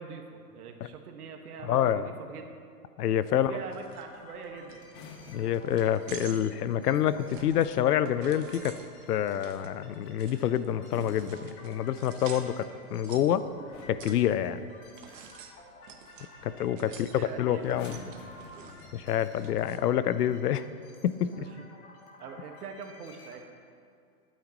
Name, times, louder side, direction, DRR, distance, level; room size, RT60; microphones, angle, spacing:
voice 1, 0.0-2.4 3.3-4.8 16.8-17.8 21.4-21.5 22.2-23.4, right 5 dB, 75° right, 4 dB, 1.7 m, -43 dB
voice 2, 1.6-2.1 3.0-3.5 5.3-8.8 9.1-12.6 12.9-13.4 13.9-14.7 16.4-18.0 18.9-20.6 21.0-21.5, left 10 dB, 85° left, 14 dB, 0.7 m, -27 dB
sound 1, 3.5-23.4, left 2 dB, 25° left, 1.7 m, -53 dB
sound 2, 3.7-19.8, right 7 dB, 55° right, 1.2 m, -50 dB
sound 3, 4.8-5.8 7.9-8.5 10.7-12.1 13.1-13.3 13.7-14.2 15.9-16.1 16.4-16.7 17.6-19.3 20.2-20.5, left 4 dB, 55° left, 1.8 m, -49 dB
20.0 x 9.3 x 3.0 m, 2.4 s
hypercardioid pair, 155°, 45 cm